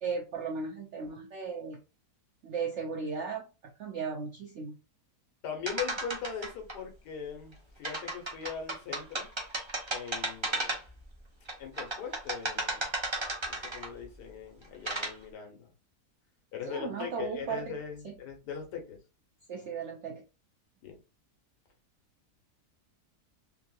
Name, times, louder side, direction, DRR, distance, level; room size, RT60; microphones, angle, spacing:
voice 1, 0.0-1.8 2.4-4.8 16.7-17.7 18.0-18.1 19.5-20.2, right 5 dB, 75° right, 2 dB, 0.6 m, -36 dB
voice 2, 5.4-9.3 9.9-10.8 11.6-12.9 13.5-15.7 16.5-19.0 20.8-21.0, left 7 dB, 80° left, 4 dB, 1.5 m, -40 dB
sound 1, 5.7-6.7 7.8-11.0 11.5-14.0 14.6-15.1, right 2 dB, 35° right, 0.4 m, -34 dB
3.4 x 2.7 x 2.3 m, 0.31 s
omnidirectional pair, 1.8 m